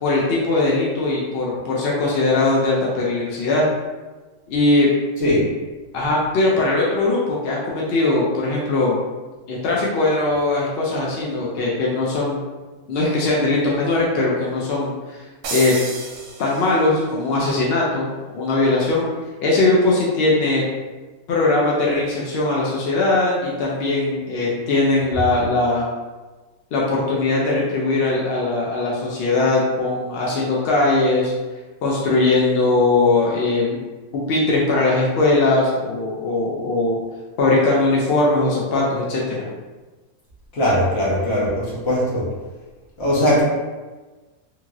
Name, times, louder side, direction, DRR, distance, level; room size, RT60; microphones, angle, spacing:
voice 1, 0.0-3.7 4.5-4.9 5.9-9.0 9.5-12.4 12.9-15.2 15.5-15.8 16.4-18.1 18.3-19.0 19.4-20.6 21.3-25.9 26.7-31.3 31.8-33.8 34.1-37.0 37.4-39.2, left 2 dB, 65° left, -4 dB, 0.6 m, -20 dB
sound 1, 15.4-17.1, right 4 dB, 90° right, 1.1 m, -31 dB
voice 2, 40.5-42.3 43.0-43.4, equal, 50° left, -7 dB, 1.2 m, -19 dB
3.0 x 2.7 x 2.4 m, 1.3 s
omnidirectional pair, 1.5 m